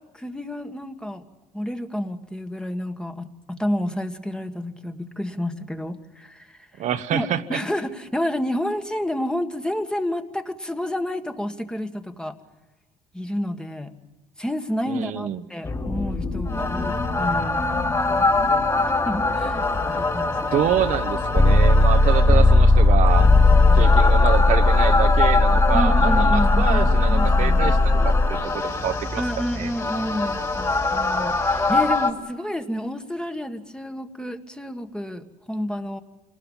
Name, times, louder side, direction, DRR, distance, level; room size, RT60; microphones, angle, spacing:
voice 1, 0.1-1.2 1.5-6.9 7.1-12.3 13.1-13.9 14.4-17.6 18.2-18.6 19.0-20.7 23.5-24.2 25.7-27.7 29.2-36.0, left 1 dB, 5° left, 7 dB, 1.6 m, -30 dB
voice 2, 6.8-7.6 14.9-15.4 20.5-23.3 23.7-29.7, right 10 dB, 60° right, 9 dB, 1.1 m, -27 dB
sound 1, 15.6-32.1, left 2 dB, 25° left, 3.0 m, -19 dB
27.0 x 19.5 x 7.3 m, 1.1 s
cardioid pair, 110°, 14 cm